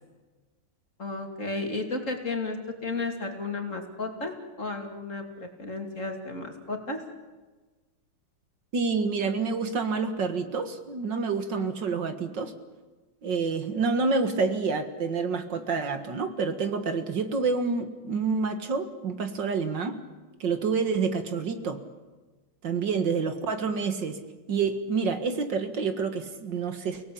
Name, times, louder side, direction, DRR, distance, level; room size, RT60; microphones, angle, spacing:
voice 1, 1.0-2.6 2.8-7.0, left 3 dB, 40° left, 4 dB, 3.1 m, -33 dB
voice 2, 8.7-12.5 13.2-20.0 20.4-21.8 22.6-24.2 24.5-27.1, right 4 dB, 65° right, 8 dB, 2.3 m, -28 dB
30.0 x 18.0 x 8.6 m, 1.3 s
omnidirectional pair, 2.1 m